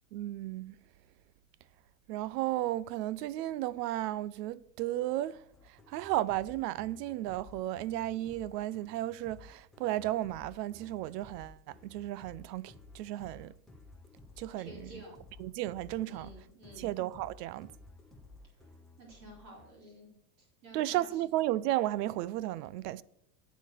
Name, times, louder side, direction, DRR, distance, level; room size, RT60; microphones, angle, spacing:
voice 1, 0.1-0.7 2.1-13.5 14.4-15.0 15.4-16.3 16.8-17.7 20.7-23.0, right 14 dB, 85° right, 0.7 m, -34 dB
sound 1, 5.5-19.7, left 3 dB, ahead, 0.4 m, -55 dB
voice 2, 14.6-15.2 16.0-16.9 19.0-21.2, equal, 35° right, 3.9 m, -52 dB
8.3 x 8.2 x 6.4 m
supercardioid pair, 175°, 47 cm